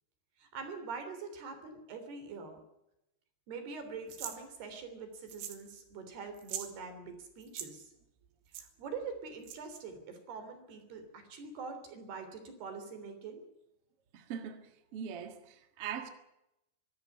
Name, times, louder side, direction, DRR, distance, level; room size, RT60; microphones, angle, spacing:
voice 1, 0.4-2.6 3.5-7.9 8.6-13.4, right 5 dB, 70° right, 5.3 m, -44 dB
sound 1, 4.1-4.4 5.3-5.7 5.9-6.0 6.3-6.7 7.4-7.7 8.5-8.7 9.4-9.8, right 10 dB, 85° right, 3.9 m, -42 dB
voice 2, 14.1-16.1, right 8 dB, 50° right, 2.0 m, -41 dB
24.0 x 13.0 x 9.7 m
omnidirectional pair, 4.8 m